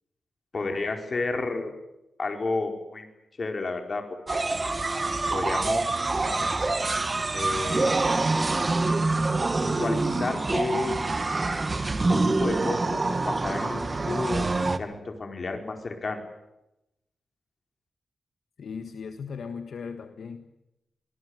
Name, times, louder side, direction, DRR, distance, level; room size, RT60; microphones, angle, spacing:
voice 1, 0.5-1.7 2.2-3.1 3.4-4.0 4.3-4.4 5.3-6.5 7.3-8.0 9.6-11.0 12.1-14.5 14.8-16.2, left 3 dB, 40° left, 4 dB, 4.6 m, -31 dB
sound 1, 4.3-14.8, right 3 dB, 25° right, 1.6 m, -26 dB
voice 2, 18.6-20.6, left 6 dB, 65° left, 7 dB, 1.6 m, -38 dB
25.0 x 19.0 x 9.7 m, 0.89 s
wide cardioid pair, 125°, 0 cm